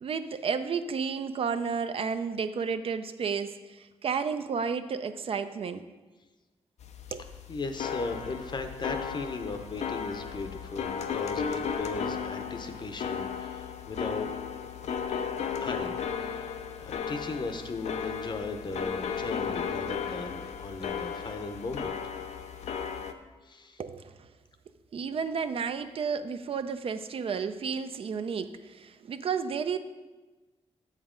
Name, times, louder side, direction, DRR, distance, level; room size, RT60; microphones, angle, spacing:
voice 1, 0.0-5.9 7.1-7.2 23.8-24.2 24.9-29.8, right 6 dB, 60° right, 10 dB, 0.4 m, -32 dB
sound 1, 6.8-23.1, left 7 dB, 90° left, 0.5 m, -35 dB
voice 2, 7.5-14.3 15.6-21.9 23.4-23.8, left 3 dB, 40° left, 7 dB, 0.6 m, -37 dB
7.8 x 7.3 x 3.7 m, 1.2 s
wide cardioid pair, 135°, 11 cm